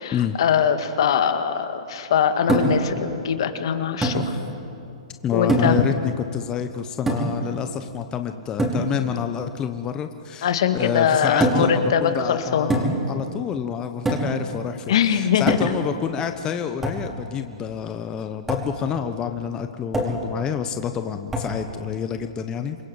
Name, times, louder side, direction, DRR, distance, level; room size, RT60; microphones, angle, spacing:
voice 1, 0.0-4.4 5.3-5.8 10.4-12.7 14.9-15.6, left 8 dB, 65° left, 8 dB, 2.0 m, -22 dB
sound 1, 2.5-2.9 4.0-4.3 5.5-5.9 7.1-7.4 8.6-8.9 11.4-11.8 12.7-13.1 14.0-14.4 15.5-15.9 16.8-17.1 18.5-18.7 19.9-20.3 21.3-21.6, right 2 dB, 10° right, 4.8 m, -23 dB
voice 2, 5.2-22.8, left 8 dB, 25° left, 7 dB, 1.1 m, -28 dB
27.5 x 22.0 x 8.0 m, 2.6 s
hypercardioid pair, 120°, 3 cm